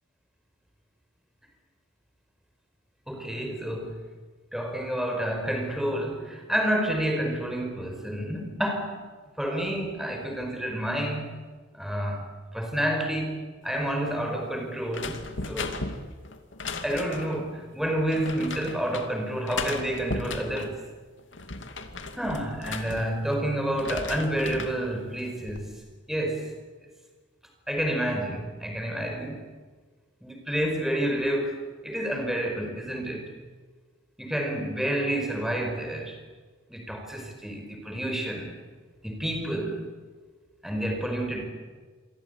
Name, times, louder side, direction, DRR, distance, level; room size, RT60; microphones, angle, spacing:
voice 1, 3.1-4.1 4.5-9.1 9.4-11.3 11.7-12.3 12.5-15.8 16.8-20.8 22.1-25.7 26.1-26.6 27.7-29.4 30.2-33.3 34.2-36.2 36.7-38.5 39.0-39.9 40.6-41.4, right 1 dB, ahead, 3 dB, 5.0 m, -29 dB
sound 1, 14.9-17.4 18.1-19.1 19.5-20.7 21.2-23.4 23.7-24.8 25.2-25.7, left 3 dB, 70° left, 2.5 m, -36 dB
28.0 x 23.5 x 8.3 m, 1.4 s
head